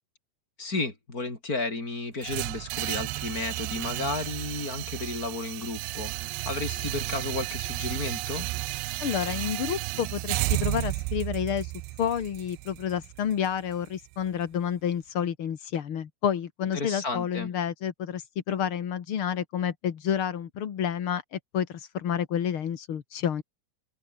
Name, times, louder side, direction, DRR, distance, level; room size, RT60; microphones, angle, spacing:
voice 1, 0.6-6.1 6.5-8.5 16.7-17.5, left 3 dB, 20° left, 4.8 m, -33 dB
sound 1, 2.2-14.3, right 21 dB, 90° right, 2.7 m, -33 dB
voice 2, 9.0-11.7 12.0-23.4, left 8 dB, 60° left, 1.3 m, -29 dB
omnidirectional pair, 4.8 m